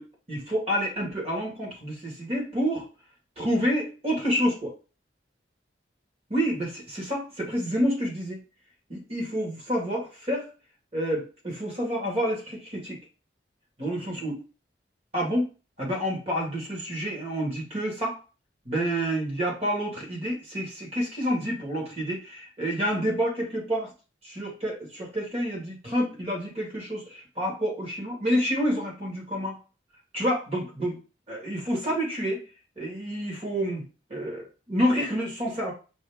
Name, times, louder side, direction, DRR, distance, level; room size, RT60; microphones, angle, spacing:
voice 1, 0.0-2.8 3.4-4.7 6.3-8.4 8.9-10.5 10.9-13.0 13.8-14.4 15.1-15.5 15.8-18.2 18.7-23.9 24.2-29.6 30.1-31.0 31.3-32.4 32.8-33.8 34.1-35.7, equal, 35° right, -2 dB, 1.9 m, -28 dB
5.3 x 2.7 x 3.5 m, 0.33 s
head